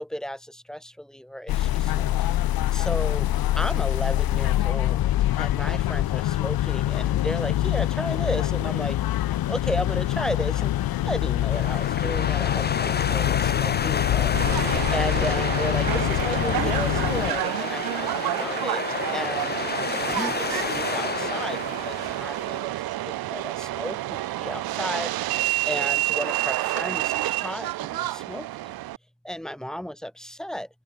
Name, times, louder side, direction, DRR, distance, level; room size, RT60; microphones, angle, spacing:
voice 1, 0.0-2.1 2.7-3.3 3.6-9.0 9.5-10.7 11.1-14.6 14.9-18.8 19.1-19.5 20.1-22.8 23.0-25.4 25.7-28.8 29.2-30.7, equal, ahead, 6.3 m, -34 dB
sound 1, 1.5-17.3, left 14 dB, 75° left, 1.8 m, -25 dB
sound 2, 11.5-22.7, left 5 dB, 25° left, 1.8 m, -30 dB
Subway metro underground, 14.3-29.0, right 15 dB, 80° right, 1.1 m, -29 dB
open air
cardioid pair, 130°, 36 cm